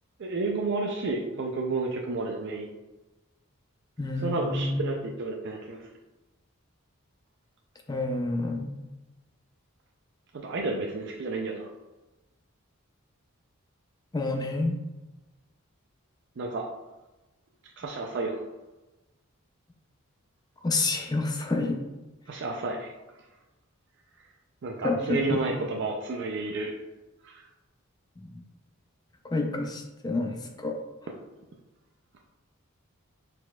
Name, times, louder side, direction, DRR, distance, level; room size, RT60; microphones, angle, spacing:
voice 1, 0.2-2.7 4.2-5.9 10.4-11.7 16.4-16.7 17.8-18.4 22.3-22.9 24.6-26.8 27.2-27.5, right 3 dB, 55° right, 1 dB, 0.4 m, -31 dB
voice 2, 4.0-4.8 7.9-8.8 14.1-14.8 20.6-21.8 24.8-25.2 28.2-28.4 29.2-30.8, left 2 dB, 20° left, 3 dB, 0.4 m, -29 dB
4.3 x 4.2 x 2.3 m, 1.1 s
head